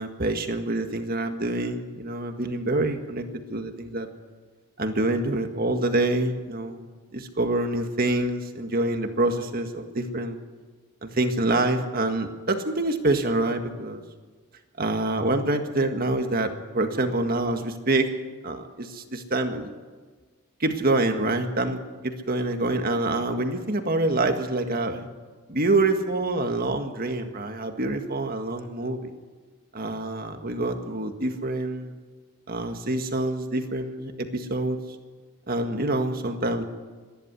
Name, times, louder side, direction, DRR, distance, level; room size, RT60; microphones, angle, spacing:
voice 1, 0.0-4.1 4.8-6.8 7.1-10.4 11.0-14.0 14.8-18.1 18.4-19.7 20.6-21.8 22.0-25.1 25.5-29.1 29.7-32.0 32.5-34.8 35.5-36.6, right 2 dB, 45° right, 6 dB, 1.8 m, -26 dB
26.5 x 11.5 x 9.7 m, 1.4 s
head